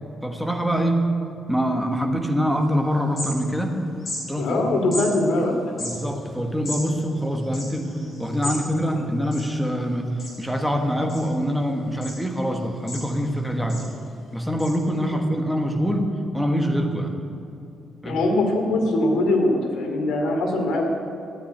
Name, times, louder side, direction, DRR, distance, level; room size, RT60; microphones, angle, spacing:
voice 1, 0.2-1.1 1.5-3.8 4.3-4.7 5.0-5.1 5.8-7.9 8.2-13.8 14.3-17.1 18.0-18.2, equal, ahead, 3 dB, 1.3 m, -24 dB
sound 1, 2.6-2.7 2.9-3.7 4.0-4.2 4.9-5.1 5.7-8.6 8.9-9.0 9.2-9.9 10.2-10.6 11.1-11.6 12.0-12.2 12.6-13.3 13.7-13.9 14.6-14.7, left 1 dB, 35° left, 4.5 m, -34 dB
voice 2, 4.4-5.5 15.1-15.2 18.0-20.9, left 2 dB, 85° left, 3 dB, 2.5 m, -22 dB
13.5 x 9.4 x 9.1 m, 2.6 s
cardioid pair, 175°, 0 cm